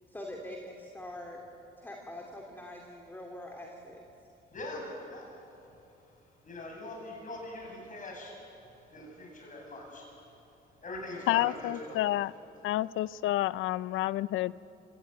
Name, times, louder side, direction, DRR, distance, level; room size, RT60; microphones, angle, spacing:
voice 1, 0.1-1.4 1.8-4.0, left 1 dB, 10° left, 1 dB, 2.7 m, -44 dB
voice 2, 4.5-5.3 6.4-8.4 8.9-10.1 10.8-12.0, left 1 dB, 40° left, -1 dB, 7.9 m, -42 dB
voice 3, 11.3-12.3 12.6-14.6, left 15 dB, 85° left, 19 dB, 0.5 m, -29 dB
25.0 x 16.5 x 9.4 m, 2.8 s
cardioid pair, 90°, 20 cm